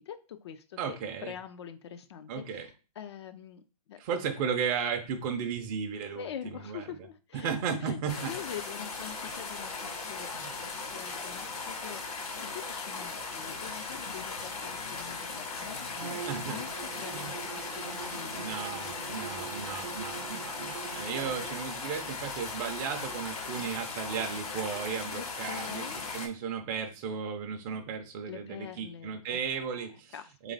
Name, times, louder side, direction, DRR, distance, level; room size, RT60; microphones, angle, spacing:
voice 1, 0.0-3.6 3.9-4.0 6.1-7.5 7.8-10.3 10.6-12.1 12.5-18.8 25.1-26.0 28.3-30.4, left 9 dB, 45° left, 9 dB, 0.4 m, -45 dB
voice 2, 0.8-1.3 2.3-2.7 4.0-6.8 7.4-8.3 10.3-10.5 16.3-16.6 17.1-17.3 18.3-25.9 26.1-30.1 30.4-30.5, right 6 dB, 30° right, 3 dB, 0.5 m, -35 dB
sound 1, 8.1-26.3, left 4 dB, 75° left, 1.8 m, -38 dB
Bowed string instrument, 15.9-21.7, right 8 dB, 90° right, 0.4 m, -44 dB
3.3 x 3.1 x 3.9 m, 0.34 s
hypercardioid pair, 140°, 19 cm